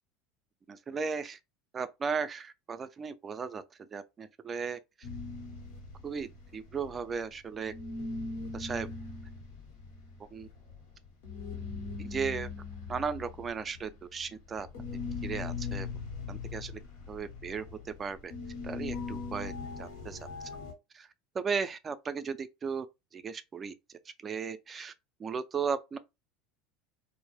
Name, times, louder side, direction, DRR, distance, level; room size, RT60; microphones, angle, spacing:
voice 1, 0.7-1.4 1.7-3.6 3.9-4.8 6.0-7.7 8.5-8.9 10.3-10.5 12.0-12.5 12.9-14.7 15.2-15.9 16.3-16.7 17.1-18.3 18.6-19.5 19.8-20.2 20.9-21.1 21.3-22.9 23.1-24.9 25.2-26.0, right 5 dB, 30° right, 0.4 m, -36 dB
sound 1, 5.0-7.4 7.6-20.7, left 4 dB, 75° left, 0.9 m, -40 dB
2.1 x 2.0 x 2.9 m
hypercardioid pair, 85°, 0 cm